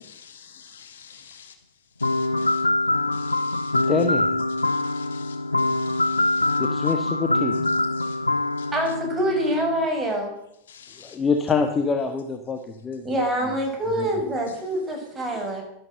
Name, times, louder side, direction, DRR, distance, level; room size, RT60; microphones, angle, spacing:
voice 1, 0.1-1.5 2.0-2.6 3.1-3.9 4.6-6.6 7.5-8.2 8.6-8.7 10.7-11.2 14.5-14.6, left 7 dB, 65° left, 7 dB, 2.0 m, -46 dB
sound 1, 2.0-9.9, left 2 dB, 80° left, 0.5 m, -24 dB
voice 2, 3.7-4.3 6.6-7.5 11.0-13.0 14.0-14.1 15.3-15.4, left 4 dB, 20° left, 5 dB, 1.5 m, -25 dB
voice 3, 8.7-10.3 13.0-15.6, right 1 dB, 15° right, 1 dB, 6.2 m, -25 dB
12.5 x 12.0 x 7.8 m, 0.79 s
figure-of-eight pair, 90°, 0 cm